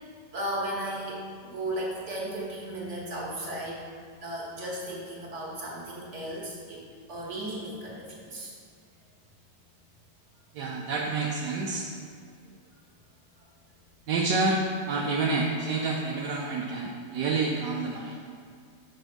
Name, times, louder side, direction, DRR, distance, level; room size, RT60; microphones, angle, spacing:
voice 1, 0.3-3.8 4.2-6.8 7.1-8.5, right 1 dB, 45° right, -3 dB, 1.5 m, -35 dB
voice 2, 10.5-11.9 14.1-14.6 14.9-18.2, right 3 dB, 85° right, -2 dB, 1.3 m, -28 dB
6.0 x 5.1 x 5.0 m, 2.1 s
omnidirectional pair, 1.8 m